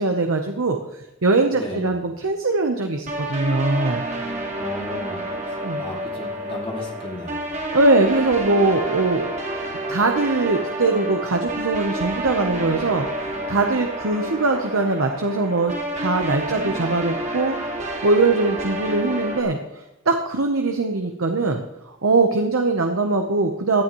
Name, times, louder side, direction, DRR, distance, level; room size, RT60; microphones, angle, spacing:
voice 1, 0.0-4.0 5.6-5.8 7.7-9.3 9.9-23.8, right 3 dB, 90° right, 4 dB, 1.0 m, -22 dB
voice 2, 1.5-1.9 4.6-7.5, left 1 dB, 25° left, -1 dB, 2.4 m, -35 dB
sound 1, 3.1-19.4, right 1 dB, 35° right, 1.9 m, -29 dB
17.5 x 11.0 x 3.1 m, 1.0 s
head